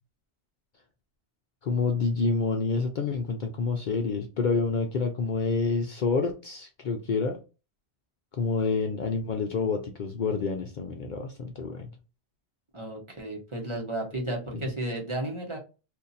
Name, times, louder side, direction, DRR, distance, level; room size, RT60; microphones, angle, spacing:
voice 1, 1.6-7.4 8.4-11.9, left 4 dB, 55° left, 4 dB, 0.6 m, -28 dB
voice 2, 12.7-15.6, right 1 dB, 30° right, 0 dB, 0.9 m, -33 dB
2.7 x 2.5 x 3.9 m, 0.31 s
omnidirectional pair, 1.1 m